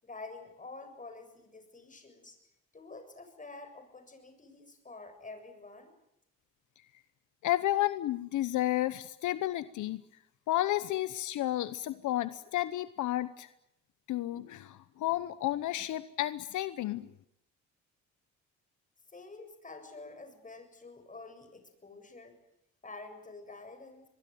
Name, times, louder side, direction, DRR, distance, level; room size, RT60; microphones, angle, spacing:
voice 1, 0.0-2.4 2.7-5.9 19.1-22.4 22.8-24.1, left 3 dB, 25° left, 7 dB, 7.3 m, -48 dB
voice 2, 7.4-10.0 10.5-13.5 14.1-17.1, left 14 dB, 80° left, 14 dB, 1.0 m, -32 dB
23.5 x 22.0 x 9.3 m, 0.81 s
cardioid pair, 90°, 30 cm